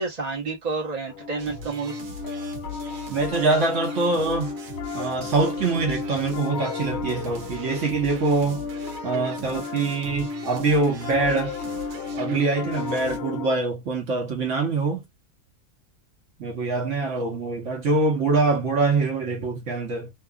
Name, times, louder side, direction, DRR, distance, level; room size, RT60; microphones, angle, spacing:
voice 1, 0.0-2.0, right 3 dB, 35° right, 0.8 m, -30 dB
Piano, 1.1-13.5, left 4 dB, 60° left, 0.7 m, -33 dB
sound 1, 1.4-13.2, right 1 dB, 80° right, 1.2 m, -40 dB
voice 2, 3.1-4.6 4.9-8.6 9.0-11.5 12.2-15.0 16.4-20.1, right 3 dB, 55° right, 1.1 m, -24 dB
2.8 x 2.4 x 2.2 m
omnidirectional pair, 1.7 m